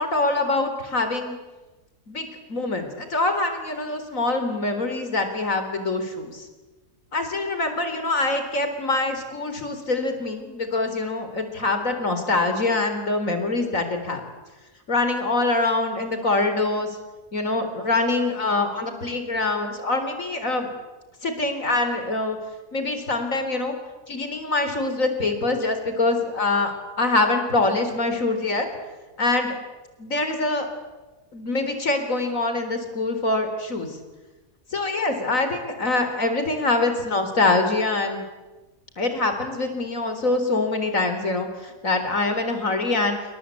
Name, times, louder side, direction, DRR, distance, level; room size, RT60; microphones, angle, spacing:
voice 1, 0.0-1.4 2.1-6.4 7.1-14.2 14.9-17.0 17.3-20.7 21.2-22.4 22.7-23.7 24.1-28.7 29.2-29.5 30.0-30.7 31.3-33.9 34.7-38.2 39.0-43.2, left 2 dB, 65° left, 7 dB, 4.2 m, -24 dB
28.0 x 24.0 x 8.5 m, 1.2 s
omnidirectional pair, 1.5 m